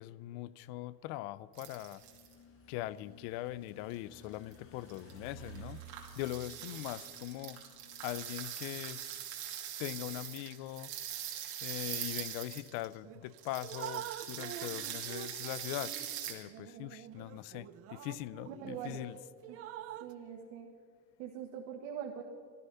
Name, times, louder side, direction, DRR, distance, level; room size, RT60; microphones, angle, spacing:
voice 1, 0.0-2.0 2.7-5.8 6.2-7.6 8.0-9.1 9.8-10.9 11.6-16.0 16.3-19.2, left 15 dB, 55° left, 0.6 m, -41 dB
sound 1, 1.5-2.3 3.9-4.0 4.5-4.6 4.9-5.2 5.4-12.9 13.3-16.3, right 11 dB, 50° right, 2.8 m, -42 dB
sound 2, 2.0-8.2, right 2 dB, 30° left, 1.3 m, -54 dB
Drip, 13.0-13.2 13.6-19.0 19.4-20.1, right 11 dB, 30° right, 0.5 m, -46 dB
voice 2, 18.5-19.0 19.5-19.6 20.0-20.7 21.2-22.2, right 9 dB, 65° right, 1.8 m, -43 dB
17.0 x 13.5 x 5.6 m
cardioid pair, 150°, 48 cm